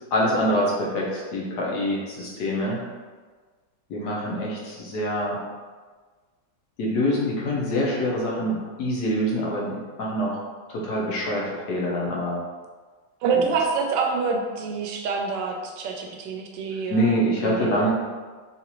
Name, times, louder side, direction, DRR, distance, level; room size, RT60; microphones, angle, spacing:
voice 1, 0.1-2.8 3.9-5.4 6.8-10.4 10.7-12.4 13.3-13.4 16.9-17.9, equal, 70° left, -4 dB, 1.3 m, -25 dB
voice 2, 13.2-17.8, right 5 dB, 85° right, 1 dB, 1.2 m, -27 dB
3.9 x 2.5 x 2.9 m, 1.4 s
omnidirectional pair, 1.9 m